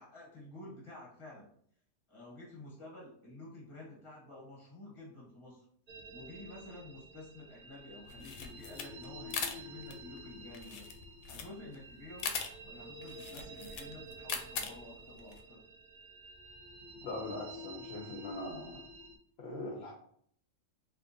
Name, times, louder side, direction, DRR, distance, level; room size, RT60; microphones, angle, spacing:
voice 1, 0.0-1.5 2.1-5.6 6.1-10.9 11.3-12.4 12.6-15.6, left 2 dB, 25° left, -4 dB, 1.2 m, -50 dB
sound 1, 5.9-19.2, right 1 dB, 60° right, 0.5 m, -50 dB
sound 2, 8.1-15.4, left 6 dB, 85° left, 1.0 m, -41 dB
voice 2, 17.0-18.8 19.4-19.9, left 2 dB, 55° left, -2 dB, 0.8 m, -41 dB
3.5 x 2.8 x 2.6 m, 0.64 s
omnidirectional pair, 1.4 m